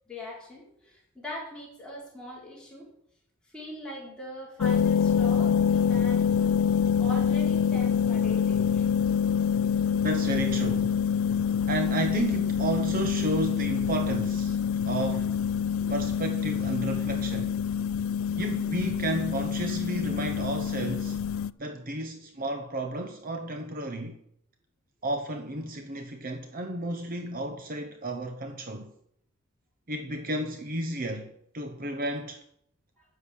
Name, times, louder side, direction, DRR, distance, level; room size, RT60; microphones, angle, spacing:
voice 1, 0.1-2.9 3.5-6.2 7.0-8.9, left 1 dB, 5° left, 4.4 m, -41 dB
sound 1, 4.6-21.5, left 7 dB, 65° left, 0.3 m, -26 dB
voice 2, 9.9-11.0 11.7-14.6 14.9-15.4 15.9-17.6 18.4-21.2 21.6-24.2 25.0-28.9 29.9-32.4, right 1 dB, 40° right, 0.9 m, -32 dB
10.0 x 6.7 x 8.5 m
head